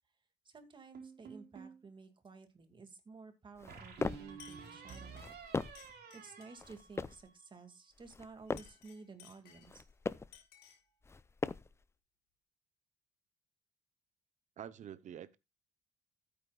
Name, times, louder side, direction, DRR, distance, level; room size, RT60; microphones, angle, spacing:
voice 1, 0.4-5.4 6.1-9.8, right 4 dB, 30° right, 2.2 m, -54 dB
sound 1, 0.9-1.8 3.7-7.4, right 6 dB, 65° right, 3.9 m, -51 dB
sound 2, 3.6-4.4 5.1-5.9 6.6-7.3 8.0-8.8 9.6-10.4 11.0-11.8, left 4 dB, 15° left, 0.5 m, -40 dB
Chink clink, 3.9-4.1 4.4-6.6 8.4-9.9 10.3-10.9, left 10 dB, 85° left, 4.2 m, -60 dB
voice 2, 14.6-15.4, right 9 dB, 45° right, 0.8 m, -47 dB
15.0 x 8.8 x 2.4 m
cardioid pair, 110°, 17 cm